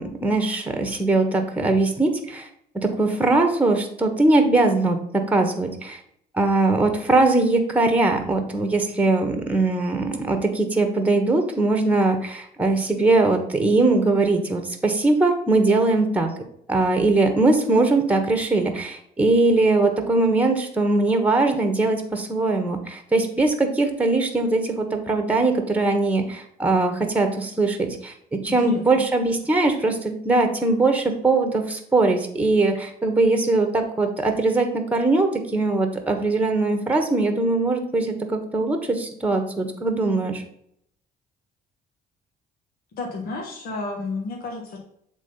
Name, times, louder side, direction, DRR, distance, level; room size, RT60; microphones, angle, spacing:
voice 1, 0.0-2.5 2.7-5.0 5.3-6.0 6.3-16.3 16.7-28.1 28.4-40.4, right 2 dB, 10° right, 5 dB, 1.2 m, -21 dB
voice 2, 28.6-29.0 42.9-44.8, left 3 dB, 60° left, -1 dB, 1.5 m, -31 dB
7.5 x 3.8 x 5.3 m, 0.70 s
cardioid pair, 110°, 17 cm